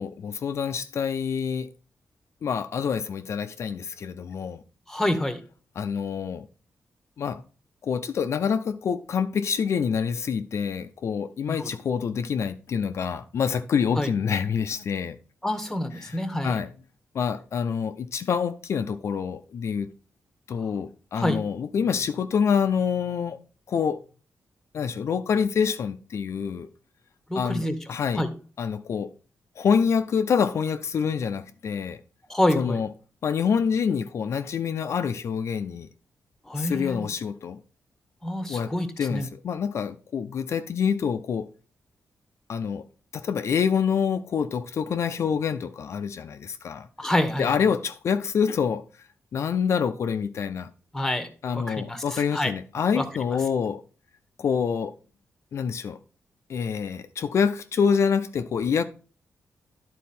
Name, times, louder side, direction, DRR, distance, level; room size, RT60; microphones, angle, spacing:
voice 1, 0.0-1.7 2.4-4.6 5.8-6.4 7.2-7.4 7.8-15.2 16.0-16.7 17.1-19.9 20.5-23.4 23.7-24.0 24.7-26.7 27.3-28.2 28.6-29.1 29.6-32.0 32.6-32.9 33.2-35.9 36.6-37.6 38.5-41.5 42.5-42.8 43.1-46.9 47.4-48.8 49.3-50.7 51.4-53.8 54.4-54.9 55.5-56.0 56.5-58.8, left 6 dB, 60° left, 0.5 m, -26 dB
voice 2, 4.9-5.4 11.5-11.8 14.0-14.1 15.4-16.6 20.6-20.7 21.1-21.4 27.3-27.7 28.1-28.3 32.3-32.8 36.5-37.1 38.2-39.3 47.0-47.6 50.9-52.5 52.9-53.0, left 1 dB, 5° left, 1.0 m, -27 dB
11.0 x 4.1 x 4.2 m
wide cardioid pair, 140°, 5 cm